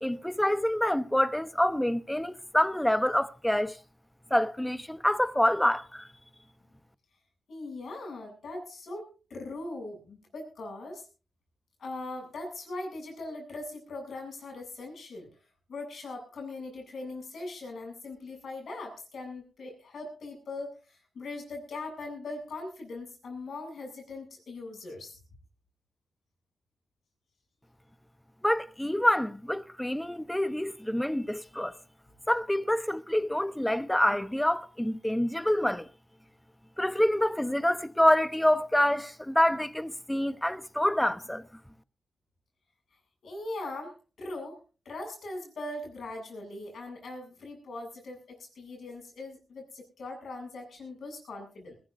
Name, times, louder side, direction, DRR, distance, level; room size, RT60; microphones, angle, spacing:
voice 1, 0.0-3.8 4.3-6.1 28.4-31.8 32.3-35.9 36.8-41.5, left 1 dB, 10° left, 0.9 m, -26 dB
voice 2, 7.5-11.1 11.8-15.3 15.7-25.1 43.2-44.6 44.8-51.8, left 2 dB, 80° left, 7.9 m, -40 dB
22.0 x 15.5 x 2.7 m
cardioid pair, 75°, 0 cm